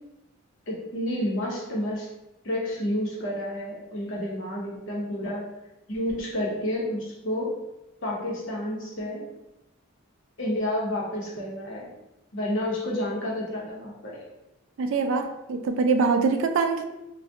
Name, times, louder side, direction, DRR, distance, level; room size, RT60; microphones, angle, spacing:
voice 1, 0.7-2.1 2.4-5.4 5.9-7.5 8.0-9.2 10.4-11.9 12.3-14.2, left 1 dB, 60° left, -4 dB, 0.8 m, -30 dB
voice 2, 14.8-16.8, right 4 dB, 65° right, 6 dB, 0.3 m, -24 dB
2.7 x 2.2 x 3.4 m, 0.93 s
head